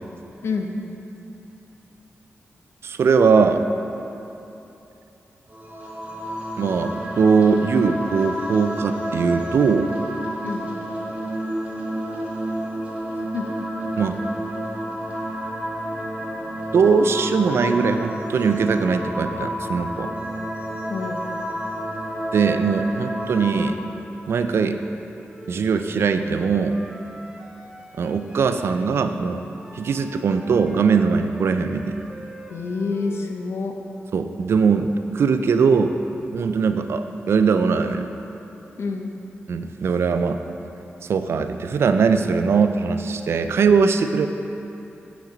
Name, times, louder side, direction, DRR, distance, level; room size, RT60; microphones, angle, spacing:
voice 1, 0.4-0.8 10.4-10.7 13.3-13.6 16.9-17.0 20.9-21.2 32.5-33.7 38.8-39.1, left 4 dB, 70° left, 3 dB, 0.6 m, -27 dB
voice 2, 2.8-3.6 6.6-9.9 14.0-14.2 16.7-20.1 22.3-23.8 24.3-24.8 25.5-26.8 28.0-29.4 29.7-32.0 34.1-35.9 36.3-38.1 39.5-40.4 41.0-44.3, right 5 dB, 70° right, 8 dB, 0.3 m, -20 dB
sound 1, 5.5-23.6, equal, 30° right, 1.3 m, -30 dB
Wind instrument woodwind instrument, 25.3-28.8 29.6-33.4, right 1 dB, 15° right, 0.5 m, -44 dB
7.2 x 6.1 x 3.8 m, 2.9 s
wide cardioid pair, 130°, 4 cm